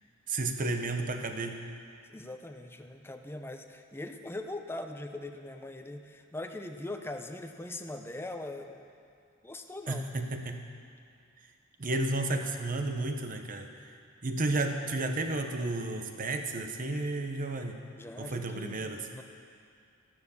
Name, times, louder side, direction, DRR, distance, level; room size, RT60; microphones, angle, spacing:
voice 1, 0.3-1.7 9.9-10.7 11.4-11.5 11.8-17.9 18.2-19.1, right 2 dB, 40° right, 5 dB, 1.0 m, -32 dB
voice 2, 2.1-8.9 9.4-10.0 18.0-19.2, left 2 dB, 10° left, 5 dB, 0.7 m, -41 dB
13.5 x 11.5 x 7.0 m, 2.4 s
head